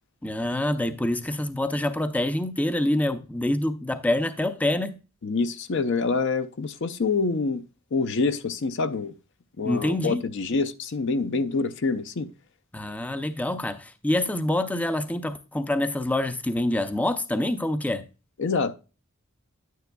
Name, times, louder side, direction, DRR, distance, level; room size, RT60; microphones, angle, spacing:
voice 1, 0.2-5.0 9.6-10.2 12.7-18.0, left 1 dB, 5° left, 0.4 m, -26 dB
voice 2, 5.2-7.6 7.9-9.1 9.6-12.3 18.4-18.7, left 4 dB, 60° left, 0.5 m, -26 dB
9.7 x 9.3 x 2.2 m
head